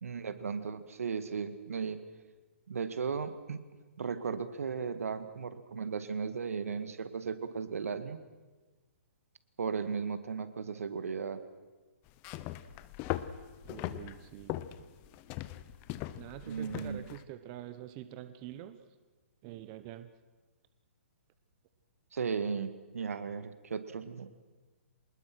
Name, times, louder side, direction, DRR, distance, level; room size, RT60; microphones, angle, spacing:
voice 1, 0.0-2.0 2.7-3.6 4.0-8.2 9.6-11.4 16.5-17.1 22.1-24.3, right 5 dB, 80° right, 11 dB, 1.9 m, -36 dB
sound 1, 12.1-17.2, left 14 dB, 25° left, 0.8 m, -40 dB
voice 2, 13.6-14.6 16.2-18.8 19.4-20.1, right 13 dB, 30° right, 10 dB, 0.9 m, -46 dB
25.0 x 20.5 x 6.2 m, 1.3 s
hypercardioid pair, 150°, 8 cm